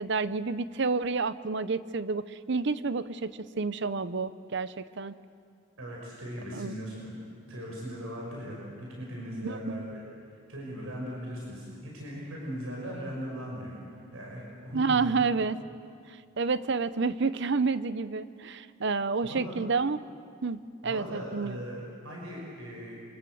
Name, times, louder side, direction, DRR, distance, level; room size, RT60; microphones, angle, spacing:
voice 1, 0.0-3.3 3.6-5.1 6.5-6.7 9.4-9.8 14.7-15.6 16.4-20.0 20.4-21.6, right 4 dB, 55° right, 14 dB, 0.7 m, -29 dB
voice 2, 5.8-7.2 7.5-10.0 10.5-13.8 14.1-15.2 19.2-19.6 20.8-23.0, equal, 90° right, -2 dB, 6.0 m, -39 dB
28.0 x 25.0 x 7.9 m, 2.3 s
head